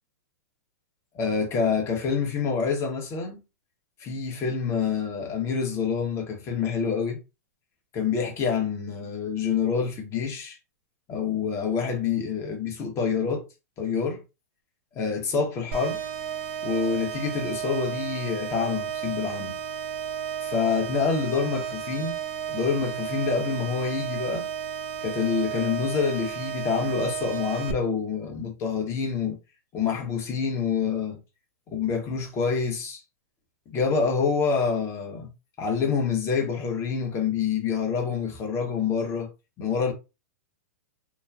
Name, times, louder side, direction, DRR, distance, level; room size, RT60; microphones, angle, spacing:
voice 1, 1.1-3.4 4.0-7.2 7.9-10.6 11.1-13.4 13.8-14.2 14.9-16.0 16.6-19.5 20.4-22.2 22.5-24.5 25.0-29.4 29.7-31.2 31.7-33.0 33.7-35.3 35.6-39.3 39.6-39.9, left 5 dB, 30° left, 1.1 m, -27 dB
sound 1, 15.7-27.7, right 9 dB, 50° right, 0.5 m, -33 dB
3.0 x 2.2 x 2.4 m
hypercardioid pair, 120°, 9 cm